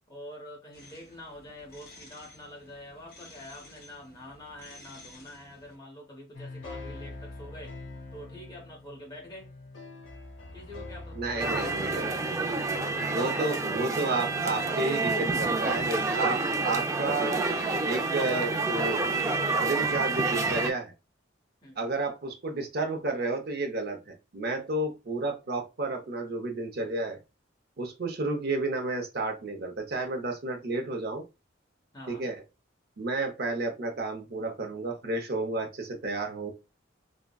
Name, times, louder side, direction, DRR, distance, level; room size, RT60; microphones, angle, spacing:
voice 1, 0.1-7.8 8.1-9.5 10.5-12.2 12.9-13.2 21.6-21.9 31.9-32.3, left 1 dB, 20° left, 1.0 m, -46 dB
sound 1, 0.7-5.8, left 2 dB, 55° left, 1.6 m, -53 dB
sound 2, 6.3-13.2, left 2 dB, 80° left, 0.7 m, -44 dB
voice 2, 11.1-12.1 13.1-17.4 17.9-19.1 19.5-20.9 21.8-27.2 27.8-31.2 32.1-32.4 33.0-36.5, right 2 dB, 55° right, 0.7 m, -31 dB
sound 3, 11.4-20.7, right 3 dB, 15° right, 0.3 m, -28 dB
3.5 x 2.1 x 2.2 m
head